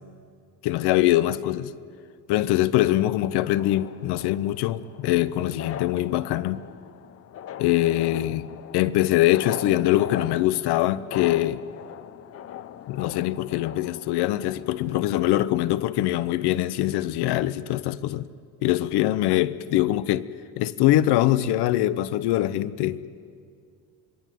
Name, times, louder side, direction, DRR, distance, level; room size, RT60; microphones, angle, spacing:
voice 1, 0.6-1.7 2.3-6.6 7.6-11.6 12.9-18.3 18.6-20.3 20.6-23.0, left 14 dB, 75° left, 1.0 m, -23 dB
sound 1, 3.6-15.3, left 10 dB, 35° left, 0.6 m, -40 dB
27.0 x 21.5 x 9.3 m
cardioid pair, 170°, 40 cm